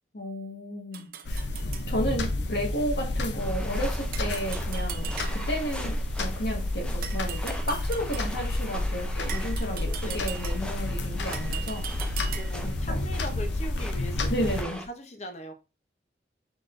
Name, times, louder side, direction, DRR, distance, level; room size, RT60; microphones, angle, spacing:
voice 1, 0.1-1.5 1.9-11.9 12.6-13.0 14.3-14.8, equal, 65° left, 0 dB, 1.6 m, -33 dB
sound 1, 0.9-1.9 4.1-5.7 7.0-8.4 9.3-10.8 11.3-12.7, right 9 dB, 55° right, 0.5 m, -40 dB
sound 2, 1.2-14.6, left 1 dB, 85° left, 0.7 m, -30 dB
sound 3, 3.4-14.9, left 1 dB, 5° left, 0.5 m, -42 dB
voice 2, 9.7-10.2 12.3-14.5 14.9-15.5, left 1 dB, 40° left, 6 dB, 0.7 m, -40 dB
5.0 x 4.1 x 2.5 m, 0.29 s
head